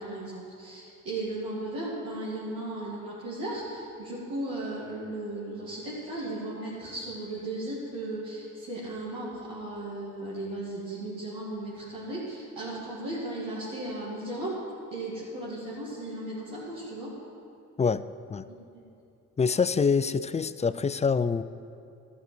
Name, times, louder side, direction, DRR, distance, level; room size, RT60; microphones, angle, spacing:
voice 1, 0.0-14.6 14.9-17.1, right 1 dB, 80° right, -9 dB, 2.6 m, -36 dB
voice 2, 19.4-21.4, left 5 dB, 20° left, 14 dB, 0.4 m, -25 dB
12.5 x 6.7 x 7.9 m, 2.6 s
supercardioid pair, 65°, 34 cm